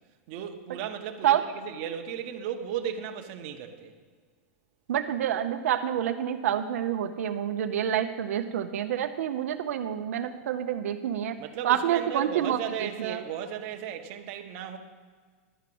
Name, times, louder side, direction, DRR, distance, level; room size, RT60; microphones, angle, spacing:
voice 1, 0.3-3.9 11.4-14.8, right 9 dB, 40° right, 4 dB, 0.9 m, -35 dB
voice 2, 4.9-11.3 11.6-13.2, right 10 dB, 85° right, 6 dB, 0.6 m, -28 dB
11.0 x 4.8 x 7.7 m, 1.5 s
supercardioid pair, 165°, 8 cm